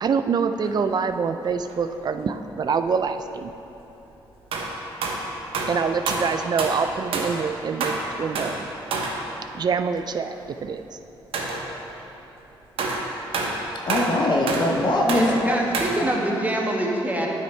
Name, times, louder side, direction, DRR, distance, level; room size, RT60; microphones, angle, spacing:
voice 1, 0.0-3.5 5.7-8.7 9.5-11.0, right 5 dB, 45° right, 9 dB, 0.4 m, -25 dB
sound 1, 0.6-0.8 1.5-1.8 3.5-3.6 4.5-7.4 7.8-9.3 10.0-10.1 10.5-10.6 11.3-12.0 12.8-16.0, right 3 dB, 75° right, 0.9 m, -28 dB
voice 2, 13.9-16.4, left 1 dB, 50° left, -1 dB, 1.0 m, -23 dB
voice 3, 15.1-17.3, right 1 dB, 15° right, -1 dB, 1.3 m, -25 dB
9.0 x 5.7 x 4.4 m, 3.0 s
cardioid pair, 75°, 9 cm